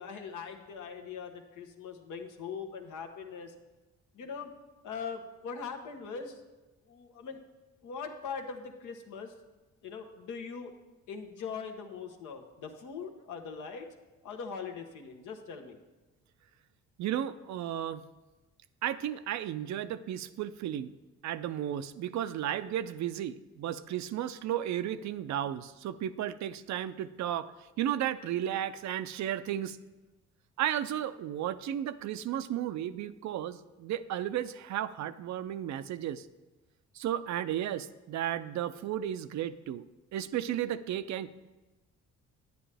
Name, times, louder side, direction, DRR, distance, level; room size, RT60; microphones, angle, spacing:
voice 1, 0.0-3.5 4.1-4.5 4.8-6.4 6.9-7.4 7.8-9.3 9.8-10.7 11.1-13.9 14.2-15.8, left 5 dB, 80° left, 4 dB, 1.1 m, -41 dB
voice 2, 17.0-18.0 18.8-20.9 21.2-27.5 27.8-29.8 30.6-36.3 36.9-39.8 40.1-41.3, right 11 dB, 65° right, 13 dB, 0.5 m, -34 dB
9.8 x 9.2 x 3.4 m, 1.1 s
cardioid pair, 90°, 30 cm